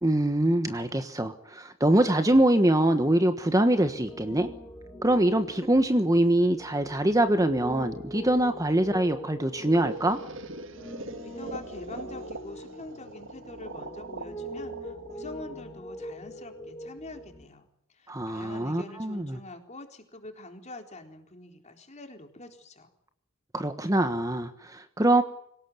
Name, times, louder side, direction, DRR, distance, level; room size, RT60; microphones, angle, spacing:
voice 1, 0.0-4.5 5.0-10.2 18.1-19.4 23.5-25.2, right 1 dB, 15° right, 8 dB, 1.3 m, -24 dB
Piano, 3.7-17.4, equal, 10° left, 6.1 m, -42 dB
sound 1, 7.3-16.9, equal, 60° left, 4.7 m, -51 dB
sound 2, 9.4-16.3, right 3 dB, 65° right, 1.8 m, -43 dB
voice 2, 11.2-17.7 17.9-22.9, left 1 dB, 35° left, 5 dB, 4.0 m, -45 dB
26.0 x 17.5 x 9.6 m, 0.73 s
head